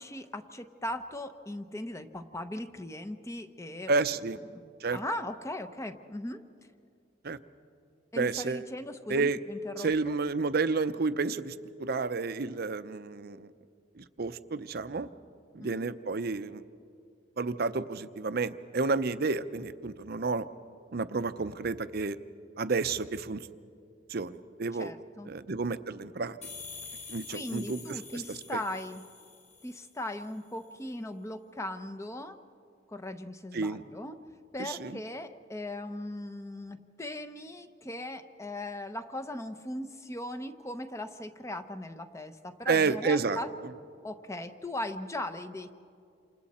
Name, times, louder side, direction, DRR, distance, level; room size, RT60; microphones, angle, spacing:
voice 1, 0.0-3.9 4.5-4.6 4.9-6.4 8.1-10.2 15.6-15.9 24.8-25.3 27.3-29.0 29.6-32.4 32.9-34.2 34.5-43.5 44.0-45.7, left 1 dB, 15° left, 9 dB, 0.8 m, -38 dB
voice 2, 3.9-4.4 4.8-5.0 7.2-7.4 8.2-8.7 9.1-9.4 9.8-13.5 14.0-15.1 15.5-16.6 17.4-20.5 20.9-22.2 22.6-23.5 24.1-24.9 25.3-26.4 27.1-28.6 33.5-33.8 34.6-35.0 42.7-43.4, right 4 dB, 55° right, 12 dB, 0.7 m, -31 dB
sound 1, 26.4-30.0, left 5 dB, 35° left, 4.7 m, -46 dB
28.5 x 27.5 x 4.3 m, 2.4 s
head